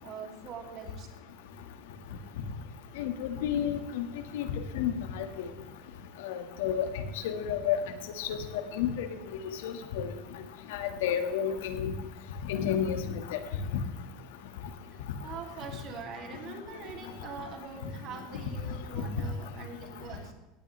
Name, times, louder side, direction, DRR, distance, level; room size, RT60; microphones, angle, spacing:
voice 1, 0.0-1.1 14.9-20.3, right 6 dB, 45° right, 3 dB, 2.8 m, -43 dB
voice 2, 3.0-4.1 4.3-4.5 4.7-5.5 6.2-6.9 7.2-7.8 8.2-9.1 9.3-10.1 10.7-11.9 12.5-13.0 13.3-13.4 18.9-19.0, left 9 dB, 85° left, 7 dB, 1.8 m, -31 dB
17.5 x 11.5 x 3.4 m, 1.1 s
supercardioid pair, 140°, 0 cm